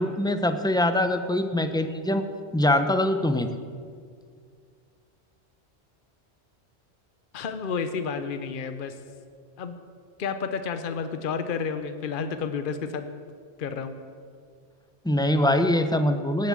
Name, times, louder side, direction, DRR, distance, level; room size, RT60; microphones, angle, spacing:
voice 1, 0.0-2.2 2.5-3.5 15.0-16.5, left 1 dB, 5° left, 8 dB, 0.6 m, -23 dB
voice 2, 7.3-8.9 9.6-9.8 10.2-13.0 13.6-14.0, left 5 dB, 50° left, 9 dB, 0.9 m, -31 dB
18.0 x 7.5 x 7.5 m, 2.1 s
omnidirectional pair, 1.2 m